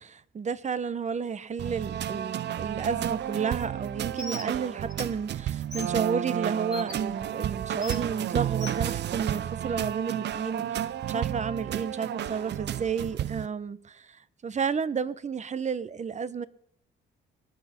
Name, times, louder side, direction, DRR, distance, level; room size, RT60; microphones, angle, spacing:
voice 1, 0.0-14.2 14.4-16.5, right 6 dB, 35° right, 0.9 m, -31 dB
sound 1, 1.6-13.5, right 11 dB, 60° right, 0.6 m, -32 dB
Bird, 4.2-4.5 4.9-5.0 5.7-5.9 6.7-6.9 7.8-8.0 8.6-8.8, left 3 dB, 20° left, 2.0 m, -38 dB
23.5 x 8.2 x 5.9 m
cardioid pair, 90°, 20 cm